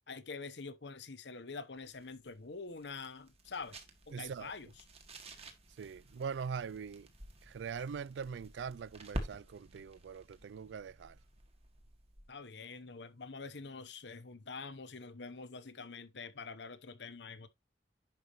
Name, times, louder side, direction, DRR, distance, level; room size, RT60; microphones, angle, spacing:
voice 1, 0.1-3.8 4.1-4.7 12.3-17.5, left 4 dB, 70° left, 1.0 m, -46 dB
sound 1, 1.8-12.4, right 1 dB, 35° right, 1.8 m, -49 dB
voice 2, 4.1-4.5 5.8-7.1 7.4-11.2, right 6 dB, 80° right, 0.3 m, -42 dB
10.5 x 5.5 x 3.1 m
head